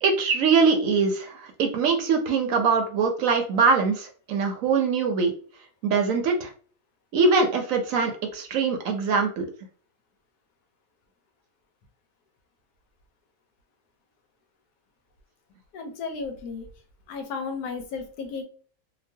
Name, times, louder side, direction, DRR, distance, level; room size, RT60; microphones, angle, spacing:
voice 1, 0.0-5.3 5.8-6.5 7.1-9.5, right 4 dB, 70° right, 4 dB, 0.9 m, -22 dB
voice 2, 15.7-16.7 17.1-18.4, left 4 dB, 85° left, 5 dB, 1.2 m, -34 dB
2.9 x 2.3 x 2.7 m, 0.43 s
omnidirectional pair, 1.6 m